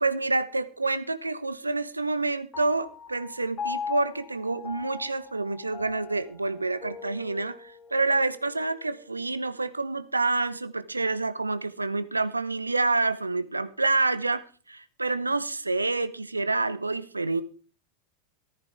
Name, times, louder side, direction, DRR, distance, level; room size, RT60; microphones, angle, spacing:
voice 1, 0.0-17.4, right 3 dB, 85° right, 0.9 m, -28 dB
Piano, 2.5-9.2, left 5 dB, 25° left, 2.9 m, -40 dB
14.0 x 14.0 x 3.5 m
figure-of-eight pair, 90°, 0 cm